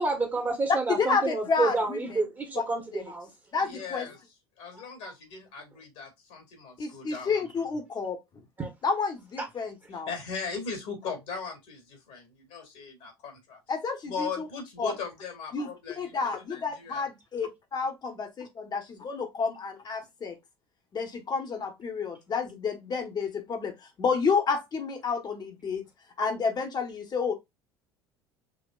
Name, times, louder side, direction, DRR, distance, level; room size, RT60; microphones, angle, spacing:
voice 1, 0.0-3.3 8.6-8.7, right 3 dB, 20° right, 1.3 m, -29 dB
voice 2, 0.9-2.2 2.5-2.6 2.9-3.0 3.5-4.1 6.8-8.2 8.8-10.1 13.7-14.5 14.8-14.9 15.5-15.7 16.0-20.4 20.9-25.8 26.2-27.3, left 5 dB, 35° left, 1.3 m, -30 dB
voice 3, 3.6-4.2 4.6-7.3 9.9-13.6 14.1-16.0 16.5-17.1, left 5 dB, 60° left, 2.2 m, -38 dB
5.9 x 2.9 x 2.4 m
figure-of-eight pair, 70°, 13 cm